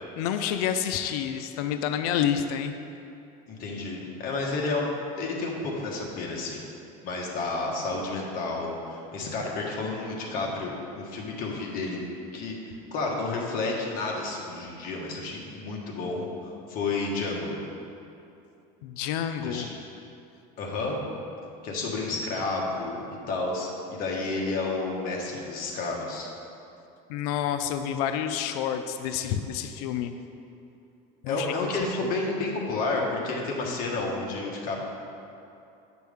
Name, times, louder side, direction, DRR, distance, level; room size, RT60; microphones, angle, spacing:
voice 1, 0.2-2.7 18.8-19.7 27.1-30.1 31.2-31.7, left 9 dB, 85° left, 8 dB, 0.4 m, -29 dB
voice 2, 3.5-4.9 5.2-6.6 7.0-12.0 12.3-12.6 12.9-17.5 19.4-19.7 20.6-21.0 21.6-26.3 31.2-34.8, left 3 dB, 50° left, -2 dB, 1.4 m, -31 dB
8.6 x 6.0 x 3.6 m, 2.7 s
cardioid pair, 140°, 19 cm